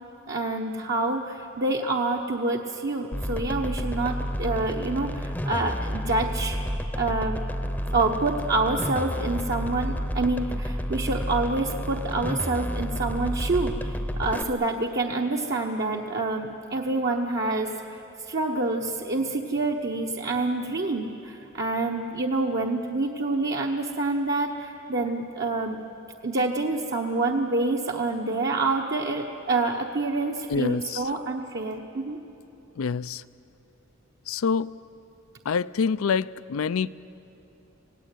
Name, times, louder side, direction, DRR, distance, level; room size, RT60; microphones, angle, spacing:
voice 1, 0.3-6.6 7.0-7.4 7.9-18.0 18.3-25.8 26.2-32.2, right 2 dB, 55° right, 0 dB, 1.1 m, -27 dB
sound 1, 3.1-14.4, equal, 10° left, 0.7 m, -30 dB
voice 2, 30.5-31.0 32.8-33.2 34.3-34.7 35.5-36.9, left 5 dB, 85° left, 18 dB, 0.5 m, -26 dB
27.5 x 17.5 x 9.2 m, 2.9 s
head